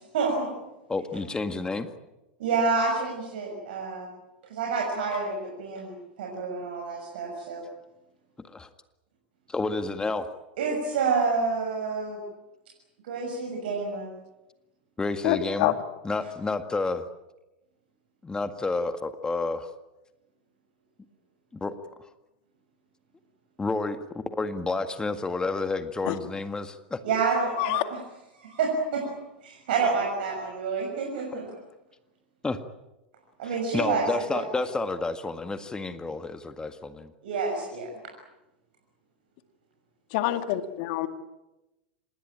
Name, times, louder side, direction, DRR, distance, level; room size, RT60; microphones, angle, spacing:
voice 1, 0.1-0.5 2.4-4.1 4.5-7.6 10.6-12.2 13.0-14.1 27.0-28.0 28.3-29.1 29.4-31.5 33.4-34.4 37.2-37.9, right 4 dB, 70° right, 0 dB, 6.5 m, -28 dB
voice 2, 0.9-1.9 8.4-8.7 9.5-10.3 15.0-15.7 16.0-17.0 18.2-19.7 21.5-21.8 23.6-27.0 31.3-31.4 32.4-32.6 33.7-37.1, left 3 dB, 15° left, 9 dB, 1.9 m, -30 dB
voice 3, 15.2-15.7 26.1-26.2 27.6-27.8 40.1-41.1, left 15 dB, 55° left, 9 dB, 2.1 m, -26 dB
26.0 x 21.0 x 8.9 m, 0.99 s
hypercardioid pair, 90°, 6 cm